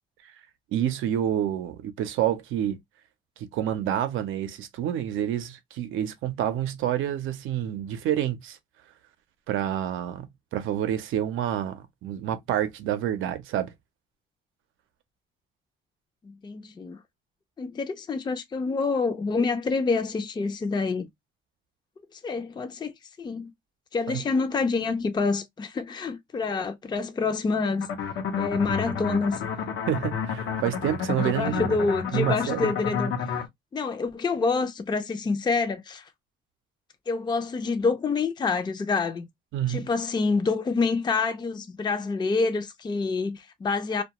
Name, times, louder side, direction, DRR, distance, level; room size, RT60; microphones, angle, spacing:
voice 1, 0.7-2.8 3.4-8.6 9.5-13.7 24.1-24.2 29.9-31.7 32.1-32.7 39.5-39.9, right 11 dB, 85° right, 0.6 m, -28 dB
voice 2, 16.2-17.0 17.6-21.1 22.1-23.5 23.9-27.9 28.4-29.4 31.2-33.1 33.7-36.1 37.1-39.3 39.7-44.0, left 4 dB, 20° left, 0.4 m, -27 dB
sound 1, 27.8-33.5, left 6 dB, 75° left, 0.7 m, -30 dB
2.3 x 2.2 x 2.8 m
cardioid pair, 90°, 20 cm